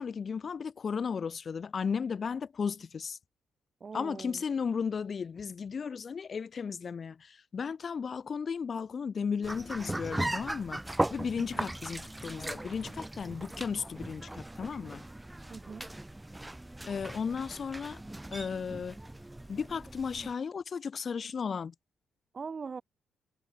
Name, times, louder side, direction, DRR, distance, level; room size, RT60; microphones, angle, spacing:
voice 1, 0.0-3.2 3.9-10.8 11.1-15.1 16.9-18.0 18.3-19.0 19.5-21.7, left 6 dB, 45° left, 0.8 m, -35 dB
voice 2, 3.8-4.4 11.4-11.7 15.5-15.9 22.3-22.8, right 5 dB, 40° right, 2.2 m, -41 dB
sound 1, 9.4-20.3, right 1 dB, 10° right, 0.5 m, -38 dB
cardioid pair, 90°, 0 cm